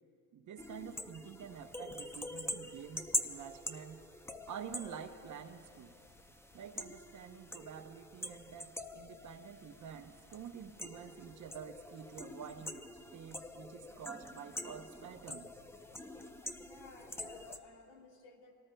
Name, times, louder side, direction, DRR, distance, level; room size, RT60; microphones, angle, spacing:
voice 1, 0.3-4.0 4.5-5.9 6.5-12.9 13.1-15.6, right 8 dB, 45° right, 7 dB, 0.9 m, -48 dB
sound 1, 0.6-17.6, left 1 dB, 5° left, 0.6 m, -45 dB
voice 2, 16.6-18.5, left 3 dB, 70° left, 1 dB, 2.7 m, -56 dB
24.5 x 18.5 x 2.3 m, 2.4 s
cardioid pair, 100°, 42 cm